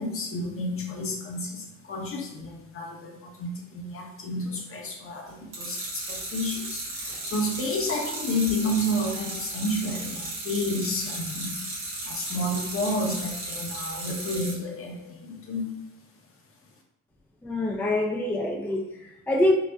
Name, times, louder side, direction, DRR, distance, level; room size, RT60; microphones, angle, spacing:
voice 1, 0.0-11.7 12.0-15.9, left 1 dB, 45° left, 0 dB, 0.8 m, -31 dB
sound 1, 5.5-14.5, right 2 dB, 85° right, 1.4 m, -35 dB
voice 2, 17.4-19.5, left 1 dB, 5° left, -1 dB, 0.3 m, -25 dB
4.0 x 2.0 x 2.3 m, 0.89 s
cardioid pair, 90°, 30 cm